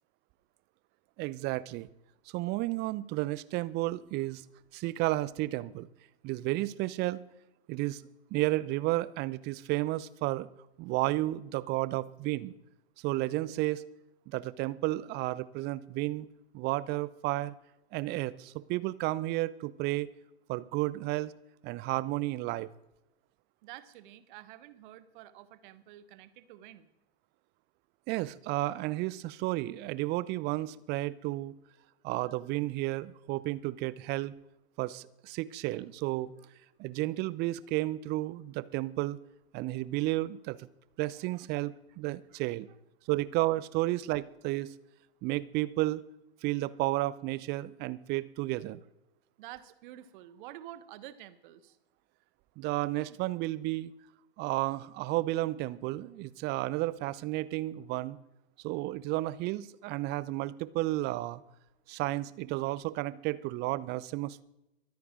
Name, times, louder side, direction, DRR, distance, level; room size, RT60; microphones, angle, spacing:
voice 1, 1.2-1.9 2.3-4.4 4.7-5.9 6.2-7.2 7.7-8.0 8.3-10.5 10.8-12.5 13.0-13.8 14.3-16.3 16.5-17.5 17.9-20.1 20.5-21.3 21.6-22.7 28.1-31.5 32.0-34.3 34.8-36.3 36.8-39.2 39.5-40.7 41.0-42.7 43.1-44.7 45.2-46.0 46.4-48.8 52.6-53.9 54.4-58.2 58.6-61.4 61.9-64.4, right 18 dB, 30° right, 18 dB, 0.7 m, -32 dB
voice 2, 23.6-26.9 41.3-41.5 42.3-42.4 43.1-43.2 49.4-51.8, right 13 dB, 50° right, 13 dB, 1.3 m, -49 dB
23.5 x 9.4 x 3.7 m, 0.88 s
figure-of-eight pair, 95°, 33 cm